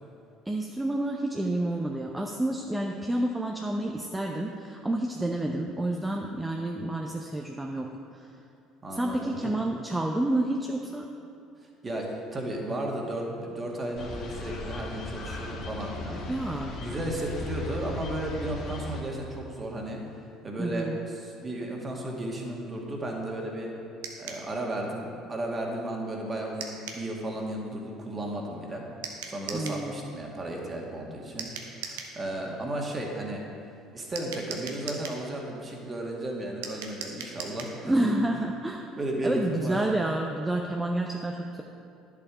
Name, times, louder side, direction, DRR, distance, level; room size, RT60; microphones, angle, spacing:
voice 1, 0.5-8.3 8.9-11.1 16.3-16.8 20.6-21.1 29.5-30.2 37.8-38.9 39.2-41.6, right 1 dB, 10° right, 1 dB, 0.7 m, -29 dB
voice 2, 8.8-9.4 11.6-16.2 16.8-20.0 20.4-20.9 21.2-23.8 24.2-28.9 29.3-31.5 31.8-33.4 33.9-37.9 39.0-39.8, right 1 dB, 30° right, 0 dB, 2.0 m, -34 dB
sound 1, 14.0-19.0, left 1 dB, 50° left, 1.6 m, -37 dB
sound 2, 24.0-24.4 26.6-27.0 29.0-29.8 31.4-32.1 34.1-35.2 36.6-37.8, right 6 dB, 75° right, 0.9 m, -39 dB
10.5 x 7.2 x 5.0 m, 2.6 s
hypercardioid pair, 65°, 0 cm